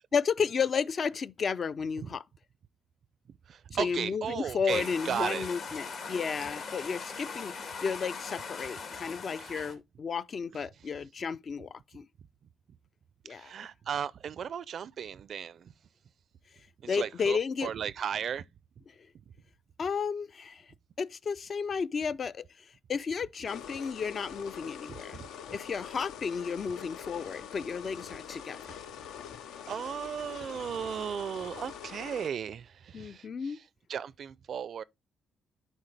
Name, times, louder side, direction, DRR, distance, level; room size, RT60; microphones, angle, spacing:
voice 1, 0.1-2.2 3.8-7.5 7.8-12.0 13.3-13.5 16.9-17.7 19.8-20.6 21.0-22.4 22.9-25.2 25.5-28.6 32.9-33.6, left 6 dB, 45° left, 0.4 m, -32 dB
voice 2, 3.5-5.5 9.4-9.7 13.3-15.7 16.8-18.4 24.9-25.6 29.7-33.6 33.9-34.8, right 8 dB, 60° right, 0.4 m, -36 dB
sound 1, 4.7-9.7, left 5 dB, 70° left, 2.2 m, -40 dB
sound 2, 23.5-32.3, left 8 dB, 85° left, 0.6 m, -44 dB
10.5 x 4.3 x 3.3 m
cardioid pair, 90°, 0 cm